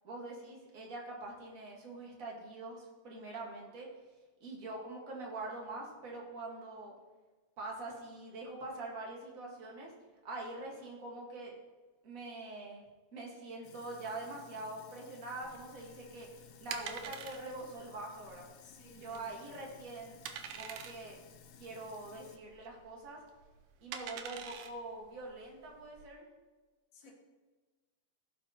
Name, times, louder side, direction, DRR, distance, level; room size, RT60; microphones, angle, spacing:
voice 1, 0.0-3.9 4.4-6.9 7.6-9.9 10.2-11.5 12.0-12.8 13.1-18.5 19.0-20.2 20.5-21.2 21.6-23.2 23.8-26.3 27.1-27.2, right 2 dB, 45° right, -2 dB, 1.1 m, -44 dB
Sink (filling or washing), 13.6-22.4, left 9 dB, 85° left, 1.5 m, -58 dB
sound 1, 15.4-26.1, right 8 dB, 75° right, 1.9 m, -47 dB
voice 2, 18.6-19.9 26.9-27.1, left 2 dB, 55° left, 0 dB, 2.1 m, -60 dB
16.0 x 6.4 x 2.9 m, 1.3 s
omnidirectional pair, 4.0 m